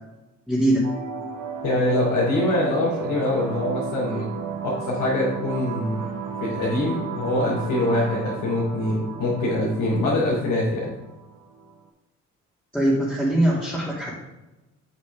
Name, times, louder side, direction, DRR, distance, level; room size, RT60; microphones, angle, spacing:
voice 1, 0.5-0.8 12.7-14.1, right 1 dB, 5° left, -9 dB, 2.4 m, -21 dB
sound 1, 0.8-11.8, right 7 dB, 80° right, 1.0 m, -34 dB
voice 2, 1.6-4.3 4.6-10.9, left 1 dB, 80° left, -7 dB, 2.8 m, -24 dB
7.5 x 7.4 x 3.6 m, 1.0 s
cardioid pair, 90°, 30 cm